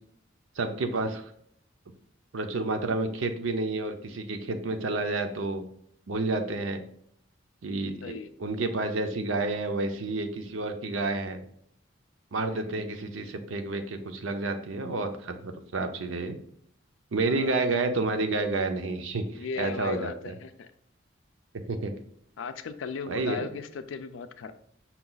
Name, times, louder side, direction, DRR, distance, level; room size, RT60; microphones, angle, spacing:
voice 1, 0.6-1.2 2.3-5.6 6.1-6.8 7.6-8.1 8.4-11.4 12.3-16.4 17.1-20.3 21.7-21.9 23.1-23.5, right 3 dB, 85° right, 7 dB, 0.6 m, -30 dB
voice 2, 8.0-8.3 12.5-12.7 17.3-17.6 19.3-20.7 22.4-24.5, left 5 dB, 75° left, 11 dB, 0.4 m, -37 dB
5.7 x 2.3 x 3.8 m, 0.69 s
head